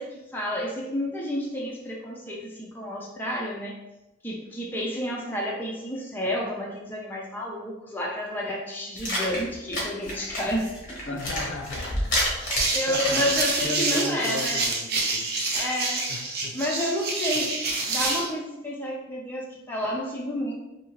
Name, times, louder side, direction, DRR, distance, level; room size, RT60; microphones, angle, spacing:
voice 1, 0.0-3.8 4.2-11.2 12.7-14.7 15.5-16.0 16.5-20.5, equal, 10° left, -3 dB, 0.4 m, -30 dB
sound 1, 9.0-13.6, left 1 dB, 45° left, 0.8 m, -29 dB
voice 2, 11.0-12.1 12.6-13.3 13.6-15.3 16.1-16.6, left 2 dB, 75° left, 3 dB, 0.5 m, -36 dB
sound 2, 12.4-18.3, right 3 dB, 50° right, 0.5 m, -27 dB
2.7 x 2.6 x 2.9 m, 0.96 s
head